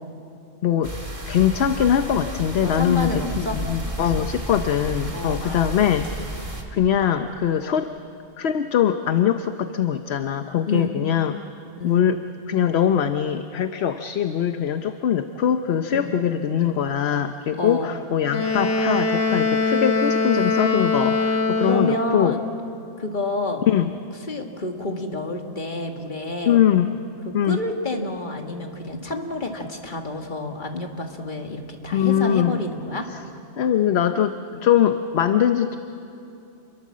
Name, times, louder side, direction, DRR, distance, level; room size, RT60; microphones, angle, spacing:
voice 1, 0.6-0.9 1.3-6.1 6.7-7.9 8.4-11.4 11.8-12.2 12.5-22.4 23.7-23.9 26.5-26.9 27.3-27.6 31.9-32.6 33.1-33.2 33.6-35.8, left 9 dB, 65° left, 8 dB, 1.0 m, -22 dB
sound 1, 0.8-6.6, right 1 dB, 30° right, 2.5 m, -32 dB
voice 2, 2.6-3.6 5.1-6.0 7.6-7.8 10.7-10.9 11.8-12.1 15.9-16.2 17.6-17.9 21.6-22.4 23.0-23.7 24.3-26.6 27.3-33.1, left 2 dB, 45° left, 3 dB, 2.0 m, -29 dB
Wind instrument woodwind instrument, 18.3-22.2, left 3 dB, 90° left, 2.4 m, -22 dB
28.5 x 22.0 x 7.4 m, 2.8 s
omnidirectional pair, 1.2 m